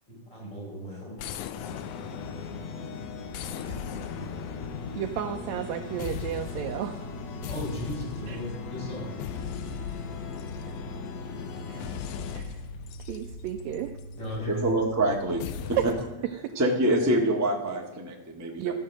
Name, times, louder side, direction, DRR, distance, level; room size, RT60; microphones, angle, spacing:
voice 1, 0.1-1.3 3.6-4.5 7.4-9.3 14.2-14.7, left 1 dB, 30° left, -4 dB, 6.2 m, -37 dB
sound 1, 1.2-2.8 3.3-5.7 6.0-6.8 7.4-8.5 9.2-11.1 11.8-14.2 15.4-16.2, left 9 dB, 80° left, 1.9 m, -40 dB
sound 2, 1.6-12.4, left 5 dB, 65° left, 1.9 m, -39 dB
voice 2, 4.9-7.0 8.3-8.4 11.6-11.8 12.3-12.5 13.1-13.9 15.8-15.9 18.6-18.7, right 10 dB, 80° right, 4 dB, 1.7 m, -32 dB
sound 3, 5.9-15.8, right 1 dB, 10° left, 2.0 m, -44 dB
voice 3, 14.5-15.9 16.5-18.7, right 1 dB, 25° right, 0 dB, 0.3 m, -26 dB
14.5 x 6.5 x 7.5 m, 1.1 s
omnidirectional pair, 3.7 m